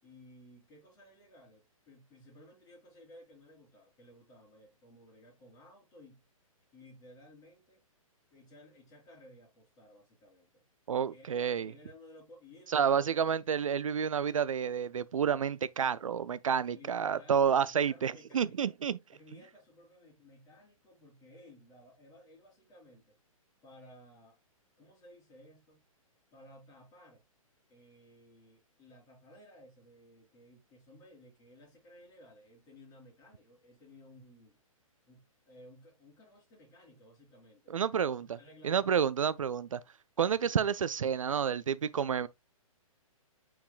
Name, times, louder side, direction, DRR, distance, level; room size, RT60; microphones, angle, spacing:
voice 1, 0.0-6.2 6.7-7.8 8.3-10.6 11.0-13.1 16.7-18.7 19.1-23.2 23.6-24.4 24.8-25.8 26.3-27.2 27.7-34.6 35.1-37.8 38.2-39.1, left 1 dB, 20° left, 4.3 m, -57 dB
voice 2, 10.9-11.7 12.7-19.0 37.7-38.4 38.6-39.8 40.2-42.3, right 7 dB, 65° right, 0.4 m, -29 dB
9.1 x 4.7 x 2.3 m
figure-of-eight pair, 120°, 18 cm